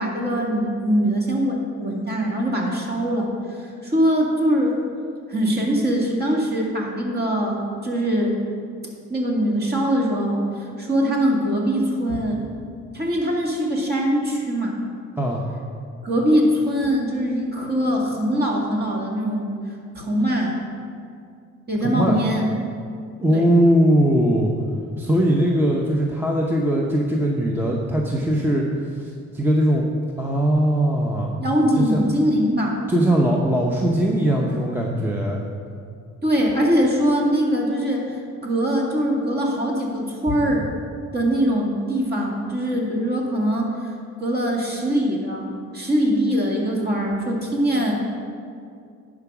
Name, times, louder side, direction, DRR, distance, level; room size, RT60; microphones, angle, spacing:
voice 1, 0.0-4.8 5.3-7.6 7.8-8.4 9.1-12.4 12.9-14.8 16.0-19.5 19.9-20.6 21.7-22.5 23.3-23.4 31.4-32.8 36.2-40.7 41.1-43.9 44.2-47.9, equal, 30° right, -2 dB, 2.1 m, -22 dB
voice 2, 21.8-22.2 23.2-24.5 25.0-28.7 29.0-29.8 30.2-31.3 31.8-32.0 32.9-35.4, right 1 dB, 5° right, -2 dB, 0.8 m, -20 dB
10.5 x 4.9 x 6.1 m, 2.3 s
cardioid pair, 95°, 30 cm